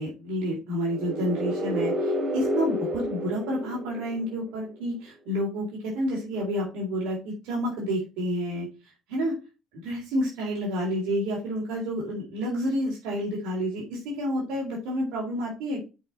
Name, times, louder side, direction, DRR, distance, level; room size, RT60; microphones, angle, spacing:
voice 1, 0.0-8.7 9.1-9.3 9.7-15.9, equal, 90° right, -4 dB, 3.6 m, -29 dB
sound 1, 0.8-4.6, equal, 40° right, 4.7 m, -30 dB
7.6 x 5.0 x 4.4 m, 0.30 s
cardioid pair, 110°, 0 cm